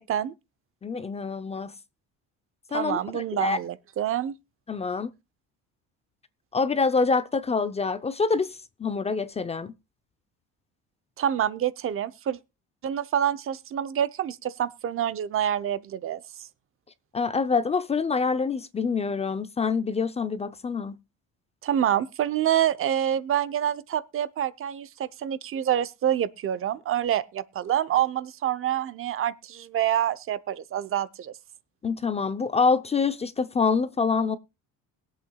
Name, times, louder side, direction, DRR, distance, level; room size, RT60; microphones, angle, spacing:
voice 1, 0.8-1.7 2.7-3.6 4.7-5.1 6.5-9.7 17.1-21.0 31.8-34.4, left 4 dB, 20° left, 0.6 m, -26 dB
voice 2, 2.7-4.3 11.2-12.4 12.8-16.2 21.6-31.3, right 10 dB, 40° right, 0.7 m, -27 dB
21.5 x 8.2 x 2.3 m
cardioid pair, 145°, 32 cm